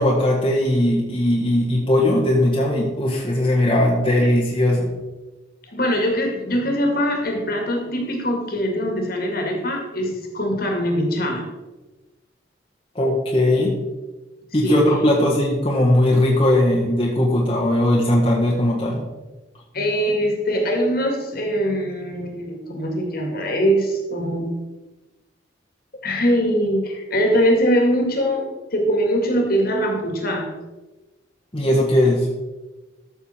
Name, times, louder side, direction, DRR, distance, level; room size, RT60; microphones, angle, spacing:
voice 1, 0.0-4.9 13.0-13.7 14.5-19.0 31.5-32.3, left 1 dB, 30° left, -4 dB, 1.6 m, -19 dB
voice 2, 5.7-11.5 14.5-14.8 19.7-24.5 26.0-30.5, equal, 50° left, 2 dB, 2.2 m, -22 dB
13.5 x 6.6 x 4.5 m, 1.1 s
head